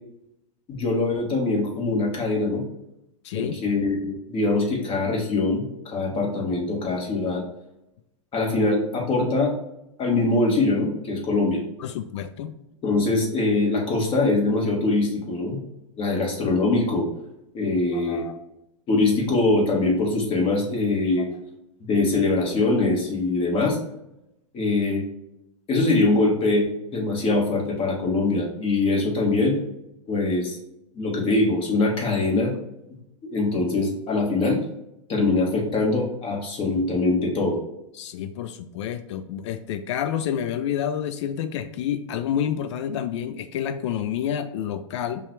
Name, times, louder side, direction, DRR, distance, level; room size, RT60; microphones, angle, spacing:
voice 1, 0.7-2.6 3.3-5.7 5.9-7.4 8.3-9.5 10.0-11.6 12.8-15.6 16.0-17.1 17.5-18.2 18.9-21.3 21.8-23.8 24.5-25.0 25.7-29.6 30.1-30.6 30.9-32.5 33.2-34.6 35.1-37.6, left 2 dB, 35° left, 0 dB, 1.4 m, -23 dB
voice 2, 3.2-3.6 11.8-12.6 17.9-18.4 21.2-21.3 38.0-45.2, left 9 dB, 65° left, 10 dB, 0.4 m, -29 dB
5.5 x 2.3 x 3.1 m, 0.85 s
hypercardioid pair, 105°, 17 cm